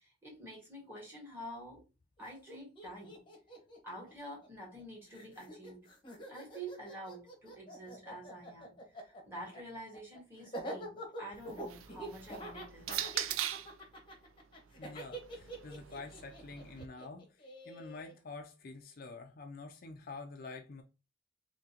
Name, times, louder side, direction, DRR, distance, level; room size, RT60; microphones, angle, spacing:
voice 1, 0.0-1.8 2.2-3.2 3.8-5.9 6.3-13.0, right 1 dB, 10° right, 1.5 m, -48 dB
Laughter, 2.2-2.3 2.5-4.8 5.1-18.1, right 1 dB, 25° left, 0.9 m, -46 dB
sound 1, 11.3-13.8 14.7-16.9, right 11 dB, 75° right, 0.4 m, -41 dB
voice 2, 14.8-20.8, left 3 dB, 45° left, 0.4 m, -47 dB
3.6 x 2.9 x 2.8 m
head